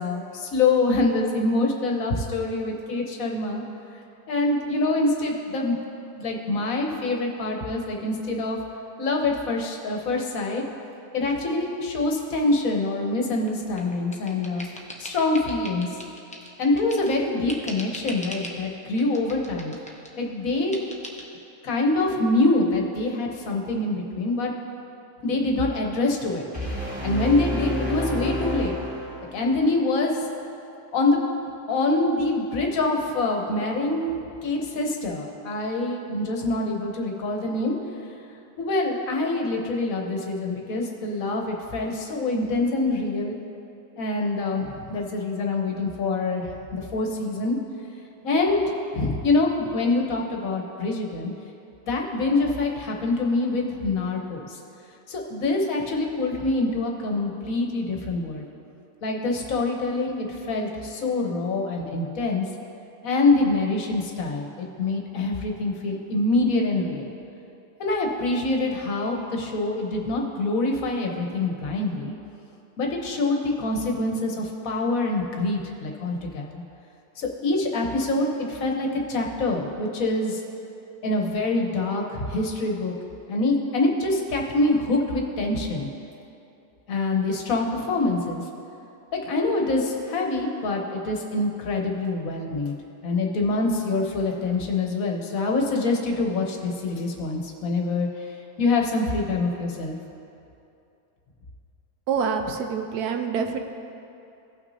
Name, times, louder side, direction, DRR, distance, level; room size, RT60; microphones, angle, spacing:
voice 1, 0.0-3.6 4.3-5.8 6.1-8.6 9.0-10.6 11.1-14.7 15.0-16.0 16.6-19.7 20.2-20.8 21.6-24.5 25.2-26.5 27.0-28.8 29.3-30.2 30.9-31.2 31.7-34.1 34.4-37.8 38.6-43.4 44.0-47.6 48.2-51.3 51.9-54.6 55.1-58.5 59.0-62.4 63.0-67.1 67.8-72.1 72.8-76.6 77.1-80.4 81.0-82.9 83.3-85.9 86.9-88.5 89.1-92.7 93.0-100.0, left 2 dB, 65° left, 1 dB, 1.3 m, -25 dB
sound 1, 13.5-17.2 17.5-18.6 19.0-20.1 20.7-21.2, equal, 10° left, 0.3 m, -40 dB
sound 2, 26.5-29.6, equal, 5° right, 1.5 m, -29 dB
voice 2, 102.1-103.6, right 6 dB, 80° right, 5 dB, 1.2 m, -26 dB
16.5 x 6.0 x 2.7 m, 2.7 s
omnidirectional pair, 1.6 m